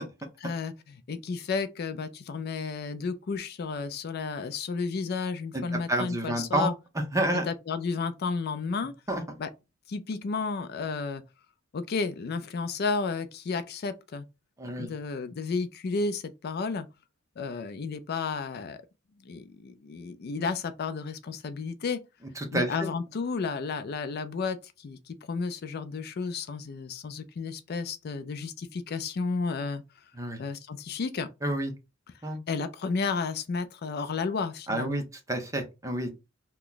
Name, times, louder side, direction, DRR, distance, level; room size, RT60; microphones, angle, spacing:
voice 1, 0.4-6.7 7.4-8.9 9.4-9.5 9.9-11.2 11.7-14.2 14.8-16.9 17.4-18.8 19.2-22.0 22.5-29.8 30.4-31.3 32.5-35.0, left 4 dB, 55° left, 0.4 m, -32 dB
voice 2, 5.5-6.7 7.1-7.4 9.1-9.2 14.6-14.9 22.4-22.7 30.1-30.4 31.4-31.7 32.2-32.4 34.7-35.0 35.3-36.1, right 1 dB, 15° right, 0.7 m, -29 dB
2.9 x 2.3 x 3.8 m
head